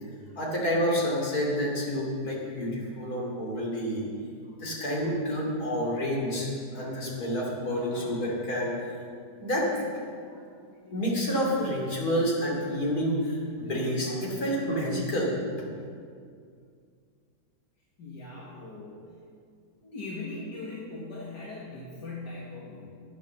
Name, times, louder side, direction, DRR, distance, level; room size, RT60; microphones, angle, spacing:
voice 1, 0.0-4.0 4.6-9.0 9.4-10.4 10.8-15.3, equal, 60° left, -4 dB, 3.4 m, -29 dB
voice 2, 18.0-19.0 19.8-22.8, left 2 dB, 75° left, -6 dB, 2.5 m, -40 dB
12.0 x 8.7 x 6.9 m, 2.2 s
omnidirectional pair, 1.8 m